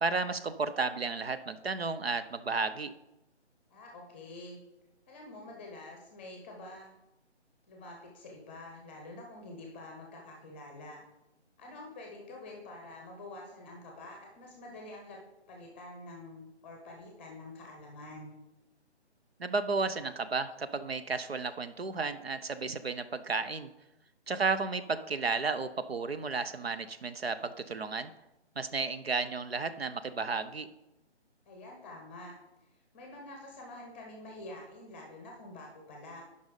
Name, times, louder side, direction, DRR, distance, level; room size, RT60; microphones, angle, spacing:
voice 1, 0.0-2.9 19.4-23.7 24.3-28.1 28.6-30.7, right 4 dB, 60° right, 11 dB, 0.7 m, -33 dB
voice 2, 3.7-4.6 5.1-6.9 7.7-11.0 11.6-15.2 15.5-18.3 31.5-32.3 32.9-36.2, left 2 dB, 10° left, 0 dB, 0.8 m, -47 dB
10.5 x 5.5 x 5.0 m, 0.94 s
figure-of-eight pair, 145°, 35 cm